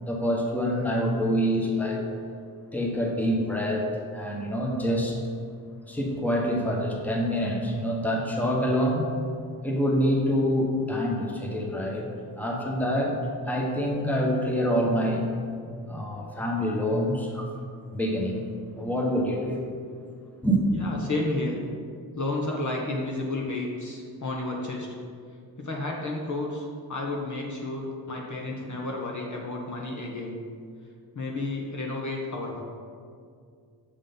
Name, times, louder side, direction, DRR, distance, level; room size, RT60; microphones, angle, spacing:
voice 1, 0.0-2.1 2.7-3.9 4.1-5.2 5.9-9.1 9.6-12.1 12.4-13.2 13.4-15.3 15.9-17.5 17.9-18.4 18.8-19.6 20.4-20.6, equal, 5° left, -1 dB, 1.3 m, -26 dB
voice 2, 20.7-21.6 22.2-24.9 25.6-30.4 31.1-32.6, left 2 dB, 40° left, -1 dB, 1.1 m, -31 dB
6.7 x 3.6 x 5.3 m, 2.3 s
hypercardioid pair, 40°, 47 cm